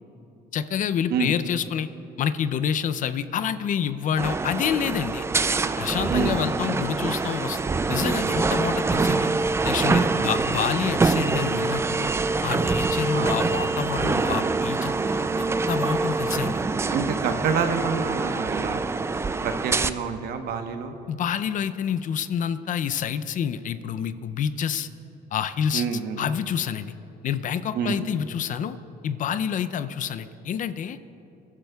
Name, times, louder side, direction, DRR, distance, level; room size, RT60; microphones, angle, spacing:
voice 1, 0.5-1.9 2.2-5.3 5.8-7.6 7.9-9.3 9.6-12.1 12.4-14.9 15.7-16.7 21.1-24.9 25.3-25.9 26.2-26.9 27.2-28.8 29.0-31.0, left 8 dB, 50° left, 13 dB, 0.5 m, -28 dB
sound 1, 4.2-19.9, right 3 dB, 15° right, 0.3 m, -25 dB
voice 2, 6.1-6.4 10.2-10.4 13.1-13.3 16.9-18.8 19.4-20.9 25.7-26.2 27.7-28.0, right 6 dB, 65° right, 6 dB, 1.1 m, -27 dB
26.5 x 12.0 x 2.3 m, 2.9 s
cardioid pair, 110°, 17 cm